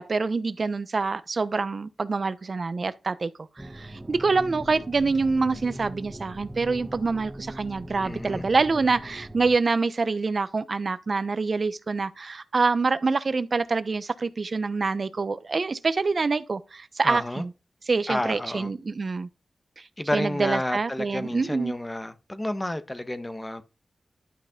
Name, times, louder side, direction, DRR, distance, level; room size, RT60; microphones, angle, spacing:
voice 1, 0.0-3.3 3.6-17.5 17.9-19.3 20.1-21.7, right 4 dB, 60° right, 1.0 m, -26 dB
sound 1, 3.6-9.6, right 1 dB, 20° right, 1.2 m, -40 dB
voice 2, 8.0-8.5 17.0-17.4 18.1-18.7 20.0-23.6, left 1 dB, 20° left, 1.5 m, -30 dB
12.0 x 5.6 x 3.8 m
cardioid pair, 55°, 0 cm